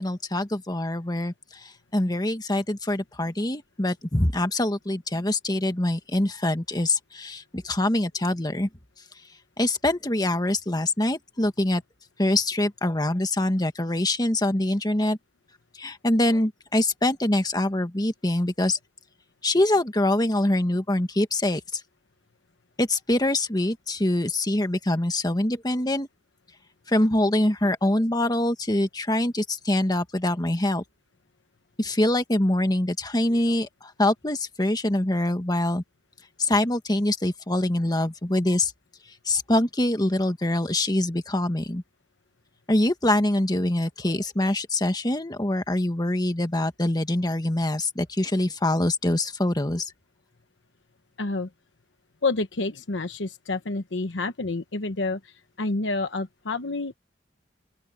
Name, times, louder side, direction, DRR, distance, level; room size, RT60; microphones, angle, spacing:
voice 1, 0.0-8.7 9.6-11.8 12.2-15.2 15.8-18.8 19.4-21.8 22.8-26.1 26.9-30.8 31.8-35.8 36.4-38.7 39.2-41.8 42.7-49.9, left 1 dB, 20° left, 1.5 m, -24 dB
voice 2, 51.2-51.5 52.2-56.9, left 3 dB, 80° left, 1.1 m, -29 dB
open air
head